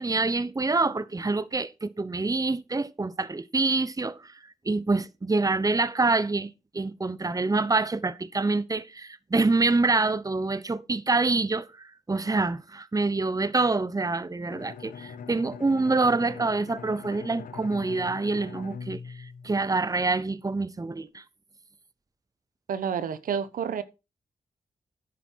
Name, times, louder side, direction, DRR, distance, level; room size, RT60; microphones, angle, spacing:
voice 1, 0.0-4.4 4.6-21.2, right 3 dB, 25° right, 0.9 m, -26 dB
Bowed string instrument, 14.5-20.2, left 6 dB, 85° left, 1.0 m, -43 dB
voice 2, 22.7-23.8, right 7 dB, 85° right, 1.0 m, -29 dB
10.0 x 8.5 x 4.5 m
cardioid pair, 45°, 14 cm